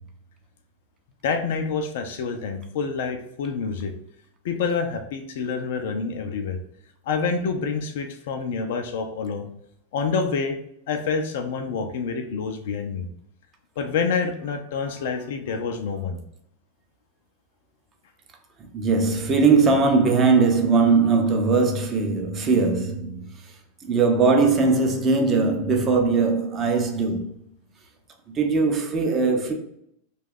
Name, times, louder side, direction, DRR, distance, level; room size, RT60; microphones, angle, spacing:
voice 1, 1.2-3.9 4.4-6.6 7.1-9.5 9.9-10.6 10.9-13.1 13.8-16.2, left 5 dB, 55° left, 0.4 m, -27 dB
voice 2, 18.7-23.3 23.8-27.3 28.3-29.5, right 4 dB, 25° right, 0.5 m, -20 dB
2.7 x 2.3 x 3.6 m
figure-of-eight pair, 90°, 0 cm